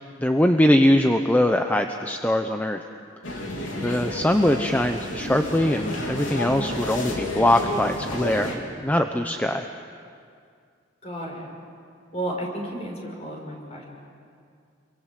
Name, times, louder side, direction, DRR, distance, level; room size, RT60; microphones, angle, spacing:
voice 1, 0.2-2.8 3.8-8.5 8.8-9.7, left 1 dB, 10° left, 5 dB, 0.8 m, -22 dB
sound 1, 3.2-8.6, left 1 dB, 85° left, 3.9 m, -31 dB
voice 2, 3.7-4.1 11.0-11.5 12.1-13.8, right 1 dB, 35° left, 0 dB, 5.9 m, -33 dB
28.5 x 24.0 x 7.7 m, 2.3 s
head